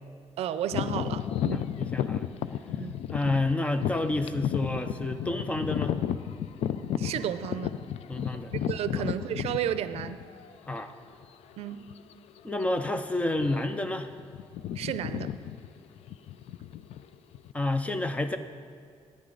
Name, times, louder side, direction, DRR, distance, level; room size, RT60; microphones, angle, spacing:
voice 1, 0.4-1.7 2.8-3.0 7.0-7.8 8.7-10.2 11.6-11.8 14.8-15.3, right 10 dB, 80° right, 13 dB, 0.5 m, -32 dB
sound 1, 0.7-10.5 11.1-11.2 11.9-12.1 12.4-12.6 13.3-13.8 14.1-17.5, left 10 dB, 80° left, 0.4 m, -33 dB
voice 2, 1.5-2.3 3.1-6.0 8.1-8.5 10.7-10.9 12.4-14.1 17.5-18.4, left 2 dB, 15° left, 8 dB, 0.4 m, -29 dB
14.5 x 9.7 x 3.9 m, 2.3 s
wide cardioid pair, 170°, 10 cm